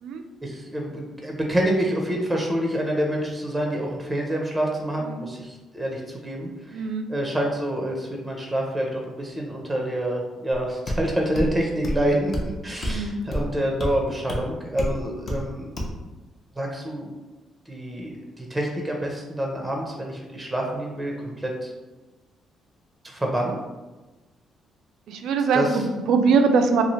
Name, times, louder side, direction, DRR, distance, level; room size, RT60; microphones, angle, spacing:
voice 1, 0.4-15.7 16.6-17.1 17.7-21.7 23.0-23.6 25.5-25.8, right 1 dB, 10° right, 0 dB, 0.5 m, -27 dB
voice 2, 6.7-7.1 12.8-13.2 25.1-26.8, right 5 dB, 80° right, 6 dB, 0.3 m, -22 dB
sound 1, 10.9-11.0 11.3-11.5 11.8-12.0 12.3-12.5 12.8-13.0 13.3-13.5 13.8-13.9 14.3-14.4 14.8-14.9 15.3-15.4 15.8-15.9, equal, 40° left, 0.6 m, -27 dB
2.7 x 2.4 x 3.0 m, 1.2 s
cardioid pair, 90°, 0 cm